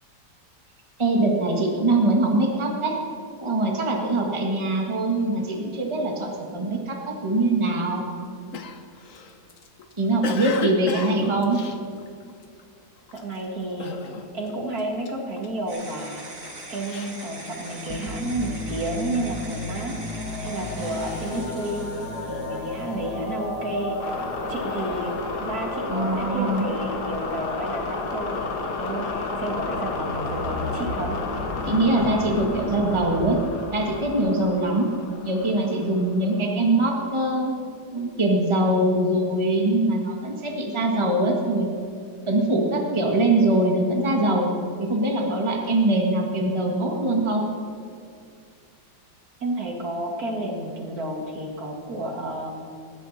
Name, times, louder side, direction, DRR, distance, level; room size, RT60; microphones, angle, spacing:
voice 1, 1.0-3.0 3.4-8.0 10.0-11.6 25.9-26.7 31.7-33.4 33.7-34.9 35.2-37.5 37.9-41.7 42.3-44.5 44.9-47.4, right 2 dB, 15° right, 0 dB, 1.8 m, -22 dB
Cough, 8.5-12.6 13.1-13.4 13.8-14.5 14.8-15.9 16.5-18.0, left 5 dB, 55° left, 1.3 m, -35 dB
voice 2, 13.1-13.9 14.3-16.2 16.7-21.8 22.3-24.1 24.5-25.1 25.4-31.2 49.4-52.5, right 1 dB, 60° right, 1 dB, 2.5 m, -31 dB
sound 1, 15.7-23.2, right 2 dB, 80° right, 4.2 m, -41 dB
sound 2, 17.9-36.4, left 3 dB, 70° left, 2.0 m, -31 dB
20.0 x 16.0 x 4.2 m, 2.3 s
omnidirectional pair, 1.8 m